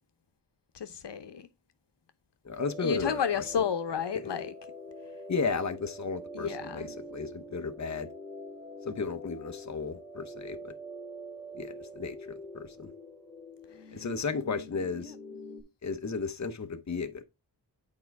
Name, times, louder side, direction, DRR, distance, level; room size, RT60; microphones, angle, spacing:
voice 1, 0.7-1.5 2.8-4.5 6.3-7.0 13.7-14.0 15.0-15.1, left 7 dB, 80° left, 0.9 m, -32 dB
voice 2, 2.4-3.4 5.3-8.1 8.8-10.7 11.5-12.9 13.9-15.1 15.8-17.2, left 4 dB, 40° left, 1.0 m, -34 dB
sound 1, 2.6-15.6, equal, ahead, 3.7 m, -45 dB
8.7 x 4.7 x 3.4 m
wide cardioid pair, 95°, 42 cm